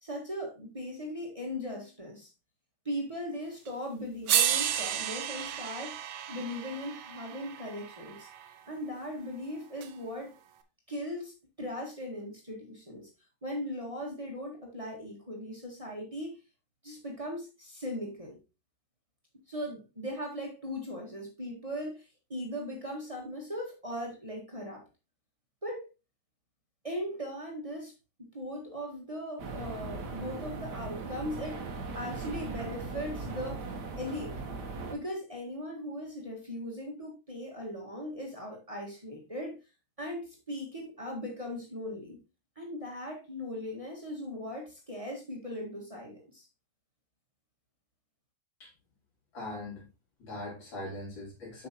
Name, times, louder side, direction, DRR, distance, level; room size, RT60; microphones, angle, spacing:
voice 1, 0.0-2.3 2.8-6.0 6.3-8.3 8.7-10.4 10.9-13.1 13.4-16.4 16.8-18.4 19.5-24.8 25.6-25.9 26.8-27.9 28.3-31.6 31.9-33.7 34.0-34.4 34.9-39.6 40.0-42.2 42.5-46.5, equal, 20° right, 1.6 m, -38 dB
sound 1, 3.7-3.8 4.3-8.5 9.8-9.9, right 10 dB, 85° right, 1.6 m, -32 dB
sound 2, 29.4-35.0, right 3 dB, 60° right, 1.5 m, -39 dB
voice 2, 49.3-49.9 50.2-51.7, left 1 dB, 80° left, 4.0 m, -40 dB
8.5 x 5.7 x 2.9 m
omnidirectional pair, 2.1 m